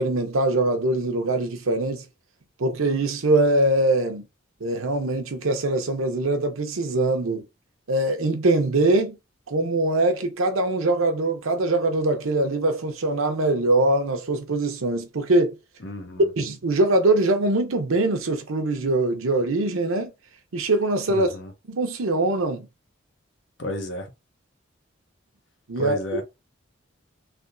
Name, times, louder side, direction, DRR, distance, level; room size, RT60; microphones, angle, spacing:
voice 1, 0.0-2.0 2.6-4.2 4.6-7.4 7.9-9.2 9.5-15.6 16.4-20.1 20.5-21.3 21.7-22.7 25.7-26.2, right 2 dB, 85° right, 0.8 m, -22 dB
voice 2, 15.8-16.3 21.1-21.5 23.6-24.1 25.8-26.2, left 1 dB, 60° left, 0.9 m, -32 dB
3.4 x 2.7 x 2.6 m
head